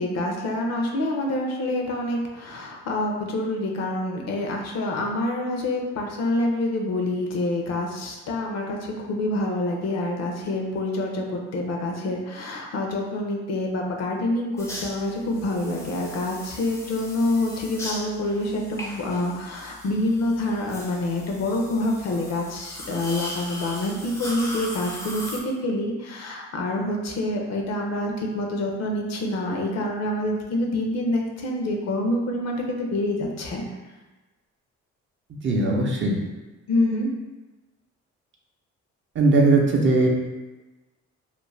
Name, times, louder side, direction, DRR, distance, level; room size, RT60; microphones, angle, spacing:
voice 1, 0.0-33.6 36.7-37.1, left 1 dB, 60° left, 1 dB, 0.6 m, -27 dB
sound 1, 14.6-25.4, left 1 dB, 10° left, 0.5 m, -38 dB
voice 2, 35.4-36.2 39.2-40.1, right 3 dB, 40° right, -1 dB, 0.5 m, -19 dB
2.5 x 2.1 x 3.1 m, 1.1 s
cardioid pair, 90°, 30 cm